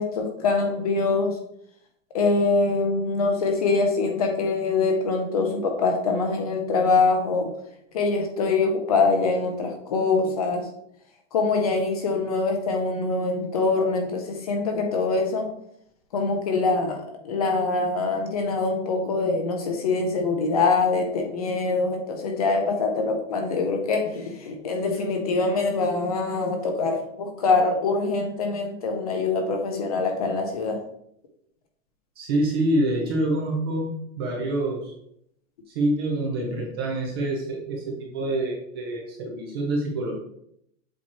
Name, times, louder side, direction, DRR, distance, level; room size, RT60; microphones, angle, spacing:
voice 1, 0.0-1.4 2.1-7.5 7.9-10.6 11.3-15.5 16.1-30.8, left 3 dB, 30° left, 4 dB, 0.5 m, -24 dB
voice 2, 32.2-34.9 35.7-40.2, right 1 dB, 20° right, 0 dB, 0.5 m, -26 dB
7.4 x 3.0 x 4.2 m, 0.74 s
supercardioid pair, 175°, 40 cm